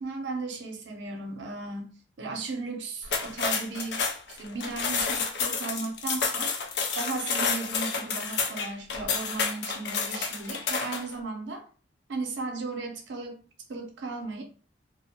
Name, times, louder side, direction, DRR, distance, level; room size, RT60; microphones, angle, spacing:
voice 1, 0.0-4.0 4.3-6.5 7.0-11.7 12.1-13.4 13.7-14.4, right 3 dB, 75° right, 0.6 m, -36 dB
sound 1, 3.0-11.1, left 5 dB, 65° left, 0.4 m, -30 dB
2.4 x 2.0 x 2.7 m
head